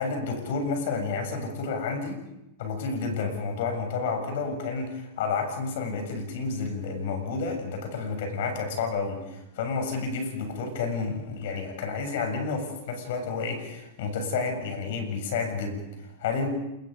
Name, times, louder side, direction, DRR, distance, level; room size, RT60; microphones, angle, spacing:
voice 1, 0.0-2.2 2.6-16.5, left 4 dB, 70° left, 5 dB, 7.6 m, -30 dB
29.0 x 21.5 x 5.4 m, 0.90 s
hypercardioid pair, 125°, 0 cm